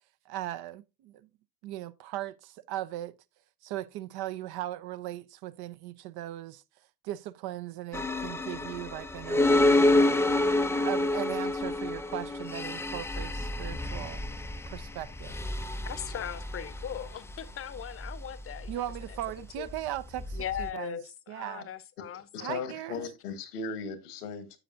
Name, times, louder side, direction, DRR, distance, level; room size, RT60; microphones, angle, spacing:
voice 1, 0.3-1.3 1.6-3.1 3.6-6.6 7.0-10.2 10.8-14.2 14.7-15.4 18.7-21.0 21.3-21.7 22.4-23.0, right 14 dB, 55° right, 0.7 m, -38 dB
sound 1, 7.9-20.7, left 2 dB, 5° left, 0.4 m, -29 dB
voice 2, 15.9-18.8 19.1-19.2 19.6-19.7 20.3-22.7, left 9 dB, 30° left, 0.8 m, -39 dB
voice 3, 22.3-24.6, left 4 dB, 75° left, 1.3 m, -37 dB
10.0 x 6.8 x 2.6 m
figure-of-eight pair, 55°, 46 cm